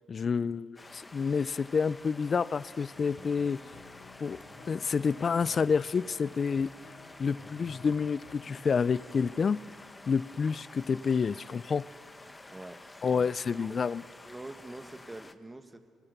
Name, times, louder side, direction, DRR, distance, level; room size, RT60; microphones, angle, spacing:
voice 1, 0.1-3.6 4.2-4.4 4.7-6.7 7.2-9.6 10.1-11.9 13.0-14.0, left 5 dB, 45° left, 0.5 m, -29 dB
sound 1, 0.8-15.3, left 2 dB, 20° left, 1.2 m, -51 dB
sound 2, 2.9-9.3, left 4 dB, 75° left, 3.4 m, -53 dB
voice 2, 13.1-13.7 14.2-15.9, right 2 dB, 15° right, 1.7 m, -45 dB
24.0 x 22.5 x 6.8 m
cardioid pair, 90°, 0 cm